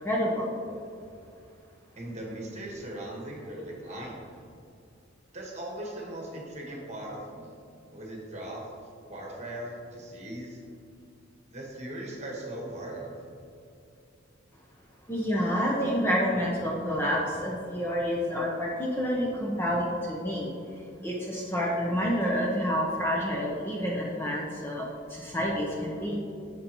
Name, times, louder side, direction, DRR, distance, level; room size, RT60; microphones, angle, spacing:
voice 1, 0.0-0.5 15.1-20.5 21.0-26.2, equal, 10° left, -3 dB, 0.8 m, -28 dB
voice 2, 1.9-4.2 5.3-7.5 7.9-8.6 9.1-10.6 11.5-13.2, right 1 dB, 35° right, -2 dB, 1.4 m, -39 dB
9.2 x 6.8 x 3.0 m, 2.5 s
head